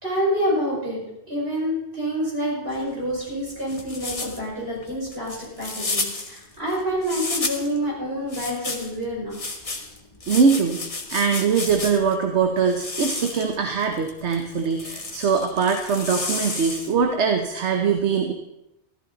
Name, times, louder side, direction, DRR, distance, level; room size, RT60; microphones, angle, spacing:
voice 1, 0.0-1.0 1.3-9.3, equal, 65° right, -5 dB, 6.0 m, -27 dB
Rice's Noise, 2.7-7.8 8.3-12.2 12.7-17.1, left 3 dB, 35° left, 1.3 m, -32 dB
voice 2, 10.3-10.8 11.1-18.3, right 5 dB, 85° right, 4 dB, 1.2 m, -22 dB
14.0 x 13.5 x 4.0 m, 0.90 s
omnidirectional pair, 1.1 m